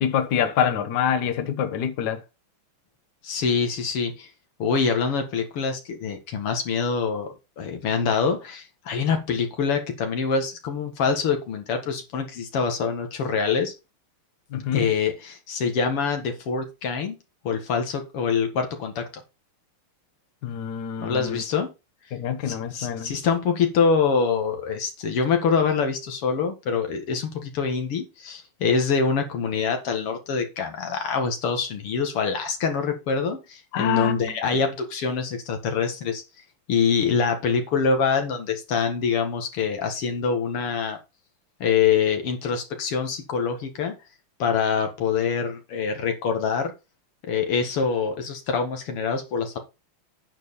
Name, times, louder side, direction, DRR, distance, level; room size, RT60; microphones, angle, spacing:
voice 1, 0.0-2.2 14.5-14.9 20.4-21.4 22.1-23.1 33.7-34.3, left 8 dB, 55° left, 1.5 m, -26 dB
voice 2, 3.2-4.3 4.6-13.7 14.7-17.2 17.4-19.1 21.0-21.7 22.5-36.2 36.7-41.0 41.6-43.9 44.4-46.7 47.2-49.6, left 5 dB, 90° left, 2.7 m, -25 dB
9.7 x 6.6 x 4.1 m
omnidirectional pair, 2.4 m